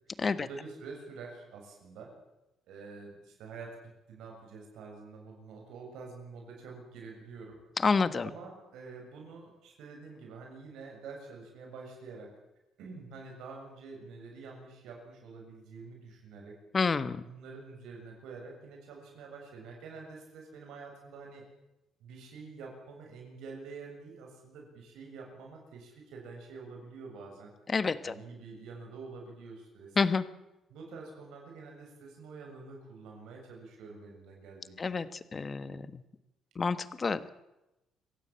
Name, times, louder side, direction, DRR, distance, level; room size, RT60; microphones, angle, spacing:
voice 1, 0.4-2.1 2.7-3.7 4.1-7.6 8.2-12.3 12.8-16.5 17.2-21.4 22.0-27.5 28.0-30.1 30.7-35.0, right 4 dB, 90° right, 0 dB, 7.2 m, -47 dB
voice 2, 7.8-8.3 16.7-17.2 27.7-28.1 30.0-30.2 34.8-36.0 36.5-37.3, left 4 dB, 30° left, 14 dB, 1.3 m, -29 dB
26.0 x 16.5 x 8.9 m, 0.96 s
cardioid pair, 130°, 0 cm